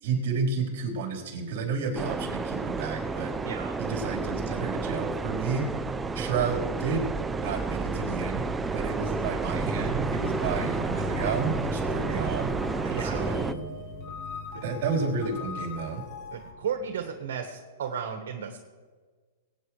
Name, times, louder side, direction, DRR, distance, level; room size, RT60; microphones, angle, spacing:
voice 1, 0.0-3.3 3.8-5.7 6.1-8.4 8.7-12.5 12.8-13.5 14.6-16.0, right 4 dB, 50° right, -1 dB, 3.9 m, -31 dB
sound 1, 1.9-13.5, right 4 dB, 10° right, 0.4 m, -31 dB
voice 2, 3.4-3.8 12.7-13.4 14.5-14.6 16.3-18.6, right 7 dB, 70° right, 5 dB, 1.4 m, -34 dB
sound 2, 7.8-17.1, equal, 10° left, 4.6 m, -39 dB
sound 3, 10.0-16.5, left 3 dB, 40° left, 1.8 m, -43 dB
24.0 x 8.8 x 3.2 m, 1.4 s
hypercardioid pair, 150°, 0 cm